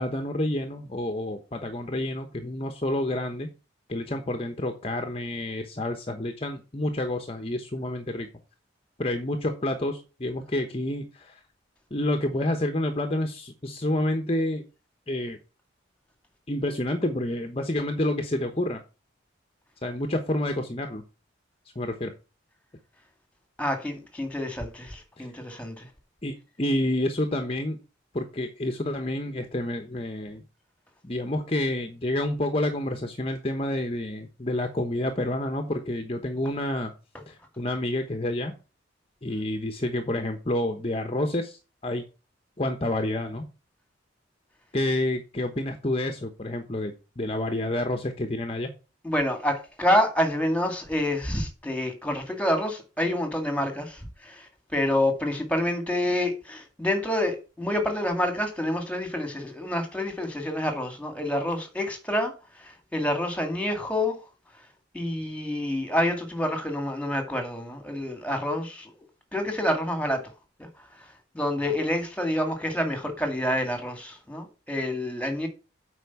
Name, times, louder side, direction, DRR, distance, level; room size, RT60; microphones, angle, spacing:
voice 1, 0.0-3.5 3.9-8.3 9.0-11.4 11.9-14.6 15.1-15.4 16.5-18.8 19.8-21.0 21.7-22.1 25.2-25.3 26.2-27.8 28.1-30.4 31.0-36.9 37.3-38.5 39.2-42.0 42.6-43.5 44.7-48.7, left 1 dB, 30° left, 1.0 m, -29 dB
voice 2, 23.6-25.8 49.0-54.5 54.7-62.3 62.6-64.2 64.9-68.9 69.3-70.2 71.3-75.5, left 1 dB, 5° left, 2.1 m, -27 dB
8.2 x 5.2 x 6.9 m
head